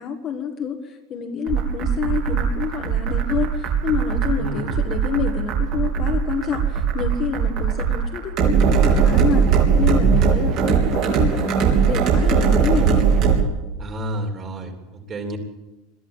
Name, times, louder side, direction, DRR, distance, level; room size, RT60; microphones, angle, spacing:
voice 1, 0.0-9.5 9.7-13.0, left 6 dB, 25° left, 4 dB, 1.5 m, -27 dB
sound 1, 1.5-13.4, right 6 dB, 40° right, 3.5 m, -19 dB
voice 2, 4.4-4.7 13.8-15.4, right 1 dB, 20° right, 3 dB, 3.3 m, -30 dB
22.0 x 14.0 x 8.9 m, 1.0 s
supercardioid pair, 175°, 0 cm